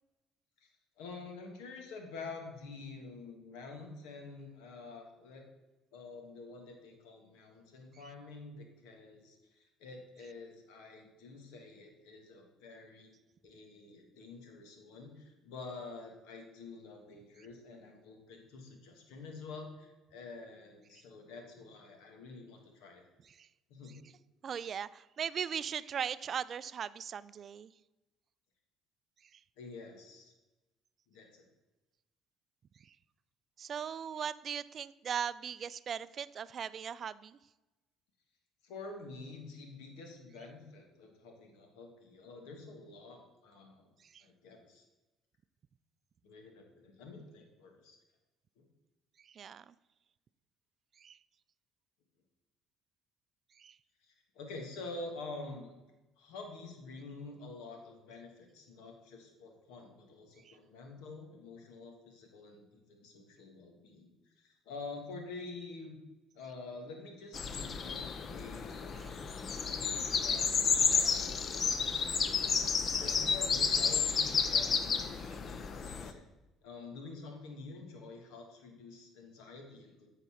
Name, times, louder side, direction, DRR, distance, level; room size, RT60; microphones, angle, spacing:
voice 1, 1.0-5.4 5.9-13.1 13.4-23.0 23.7-23.9 29.6-30.3 31.1-31.4 38.6-43.9 44.2-44.8 46.2-48.0 48.6-48.7 54.0-55.7 56.2-65.9 66.3-69.2 69.8-72.1 73.0-76.2 76.6-80.1, left 3 dB, 90° left, 3 dB, 1.5 m, -48 dB
voice 2, 24.4-27.7 29.3-29.4 32.8-32.9 33.6-37.4 44.0-44.2 49.2-49.7 51.0-51.2 53.6-53.8 60.4-60.6 69.0-69.1 72.4-72.6 75.2-75.4, right 8 dB, 45° right, 17 dB, 0.3 m, -39 dB
sound 1, 67.3-76.1, left 5 dB, 45° left, 0.6 m, -31 dB
8.2 x 4.1 x 5.7 m, 1.1 s
cardioid pair, 100°, 0 cm